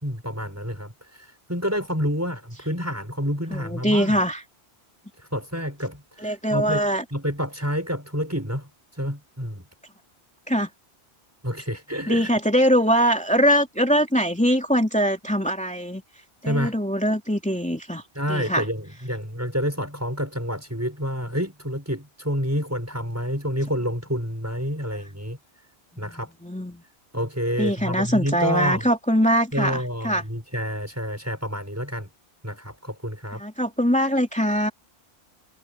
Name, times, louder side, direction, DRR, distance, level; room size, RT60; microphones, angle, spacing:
voice 1, 0.0-4.1 5.2-9.6 11.4-12.3 16.4-16.8 18.1-25.4 26.0-26.3 27.1-28.8 29.5-32.1 32.4-33.4, equal, 15° right, 6.9 m, -28 dB
voice 2, 3.5-4.4 6.2-7.0 10.5-10.7 12.1-16.0 16.4-18.0 18.3-18.6 26.0-26.8 27.6-30.2 33.3-34.7, equal, 5° left, 3.0 m, -22 dB
omnidirectional pair, 1.1 m